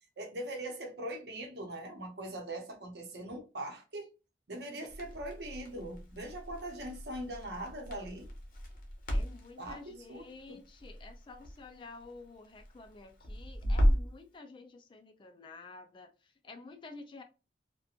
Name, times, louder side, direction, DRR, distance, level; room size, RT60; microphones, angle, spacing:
voice 1, 0.2-4.1 4.5-8.3 9.6-10.6, right 1 dB, 70° right, 0.8 m, -41 dB
Crackle, 4.9-14.2, equal, 50° left, 0.8 m, -35 dB
voice 2, 9.1-17.2, left 3 dB, 30° left, 0.3 m, -50 dB
2.9 x 2.1 x 2.4 m
head